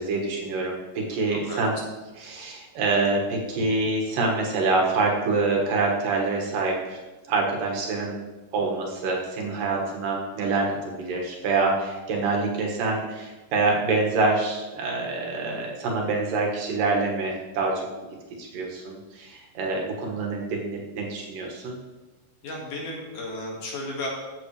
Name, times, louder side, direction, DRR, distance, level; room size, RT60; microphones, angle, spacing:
voice 1, 0.0-1.7 2.2-7.0 7.3-8.2 8.5-17.9 18.4-21.8, right 3 dB, 70° right, -1 dB, 2.9 m, -26 dB
voice 2, 1.3-1.8 22.4-24.1, left 2 dB, 60° left, -2 dB, 3.3 m, -34 dB
14.5 x 7.7 x 3.2 m, 1.2 s
omnidirectional pair, 4.3 m